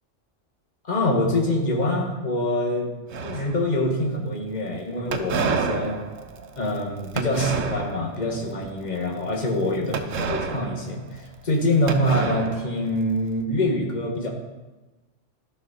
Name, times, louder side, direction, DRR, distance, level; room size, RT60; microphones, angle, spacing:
voice 1, 0.9-2.9 3.2-6.0 6.6-14.3, left 1 dB, 35° left, -1 dB, 1.6 m, -25 dB
sound 1, 3.1-3.9 5.1-8.2 8.6-8.9 9.9-11.6 11.9-13.2, right 4 dB, 85° right, 1.2 m, -29 dB
13.0 x 6.2 x 4.1 m, 1.1 s
omnidirectional pair, 1.3 m